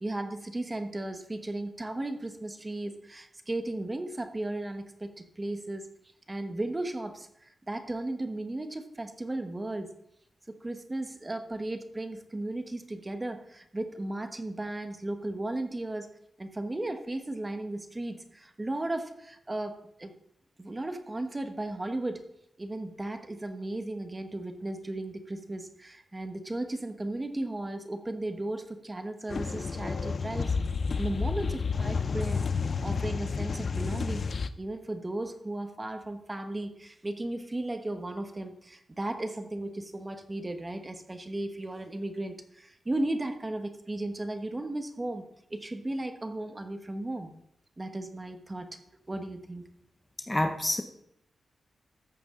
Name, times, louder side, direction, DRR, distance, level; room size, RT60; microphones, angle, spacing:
voice 1, 0.0-5.9 6.3-9.9 10.5-16.1 16.4-20.1 20.6-22.2 22.6-30.5 30.9-32.5 32.8-34.2 34.6-47.3 47.8-48.7 49.1-49.7, right 1 dB, 25° right, 7 dB, 1.2 m, -35 dB
sound 1, 29.3-34.5, left 5 dB, 55° left, 0.6 m, -30 dB
voice 2, 50.3-50.8, left 1 dB, 15° left, 7 dB, 0.8 m, -27 dB
14.0 x 8.4 x 3.8 m, 0.75 s
cardioid pair, 80°, 0 cm